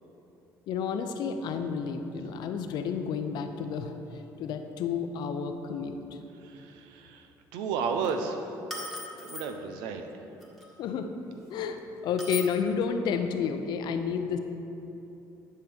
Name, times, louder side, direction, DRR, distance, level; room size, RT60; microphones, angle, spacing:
voice 1, 0.7-3.9 4.4-6.0 10.8-11.1 11.5-11.8 12.0-14.4, left 6 dB, 70° left, 7 dB, 0.6 m, -30 dB
voice 2, 6.4-8.5 9.2-10.1, right 5 dB, 85° right, 6 dB, 0.6 m, -33 dB
sound 1, 7.8-8.1 8.7-9.5 10.4-10.7 12.2-12.5, left 2 dB, ahead, 1.5 m, -38 dB
11.0 x 5.6 x 3.4 m, 3.0 s
supercardioid pair, 80°, 8 cm